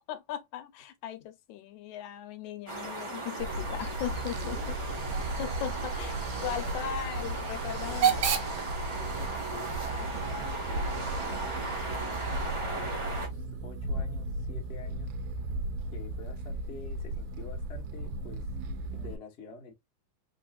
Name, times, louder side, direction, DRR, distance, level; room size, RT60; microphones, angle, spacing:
voice 1, 0.1-4.6 5.4-8.5 10.0-10.1, left 11 dB, 85° left, 2.1 m, -38 dB
sound 1, 2.7-13.3, right 2 dB, 40° right, 0.4 m, -37 dB
Hiss / Train / Alarm, 3.3-12.9, right 8 dB, 65° right, 1.3 m, -36 dB
sound 2, 3.4-19.2, right 1 dB, 90° right, 2.0 m, -36 dB
voice 2, 4.3-5.3 6.4-7.0 7.8-8.0 9.0-12.2 12.8-15.1 15.9-18.5 18.9-19.7, left 4 dB, 50° left, 0.7 m, -48 dB
4.1 x 4.1 x 2.4 m
omnidirectional pair, 3.3 m